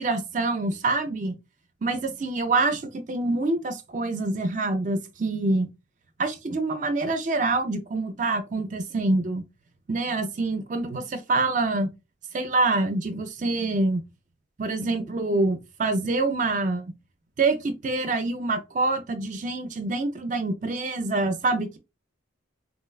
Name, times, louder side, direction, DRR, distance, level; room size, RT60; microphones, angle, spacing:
voice 1, 0.0-1.4 1.8-5.7 6.2-9.4 9.9-11.9 12.3-14.0 14.6-16.9 17.4-21.8, right 2 dB, 40° right, 0.4 m, -26 dB
3.9 x 2.1 x 2.2 m
head